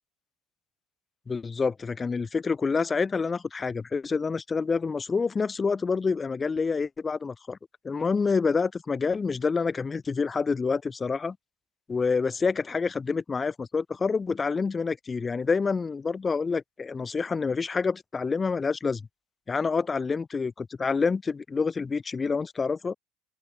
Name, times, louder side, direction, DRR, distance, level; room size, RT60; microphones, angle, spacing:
voice 1, 1.3-7.6 7.8-11.4 11.9-19.0 19.5-22.9, left 4 dB, 15° left, 4.4 m, -27 dB
open air
supercardioid pair, 160°, 0 cm